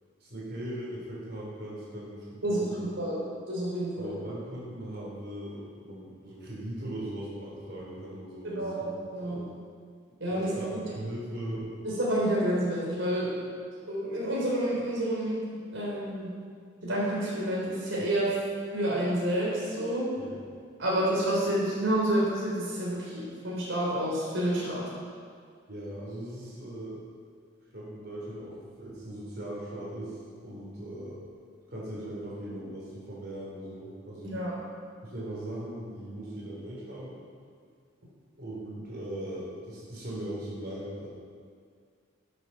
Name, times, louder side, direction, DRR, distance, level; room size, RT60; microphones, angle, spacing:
voice 1, 0.2-2.9 4.0-8.9 9.2-9.4 10.3-10.7 11.0-11.7 20.2-20.3 25.7-27.0 27.7-31.2 31.7-34.5 35.0-37.2 38.4-41.1, right 1 dB, 50° right, -6 dB, 3.7 m, -39 dB
voice 2, 2.4-3.2 3.5-4.2 8.4-9.5 10.2-10.9 11.8-13.5 13.9-16.3 16.8-18.4 18.7-20.1 20.8-24.8 34.2-34.5, right 1 dB, 80° right, -5 dB, 3.7 m, -29 dB
12.0 x 8.2 x 6.0 m, 2.1 s
head